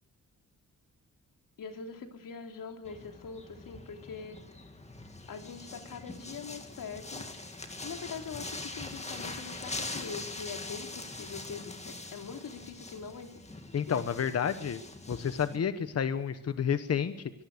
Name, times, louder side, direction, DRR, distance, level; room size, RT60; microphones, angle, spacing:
voice 1, 1.6-4.4 5.3-7.3 7.8-13.4 13.9-14.0, left 6 dB, 90° left, 5 dB, 3.2 m, -43 dB
sound 1, 2.8-15.6, left 2 dB, 20° left, 2.1 m, -43 dB
voice 2, 13.7-14.8 15.1-17.3, left 7 dB, 50° left, 10 dB, 1.1 m, -30 dB
24.5 x 19.0 x 6.6 m, 0.85 s
wide cardioid pair, 170°, 32 cm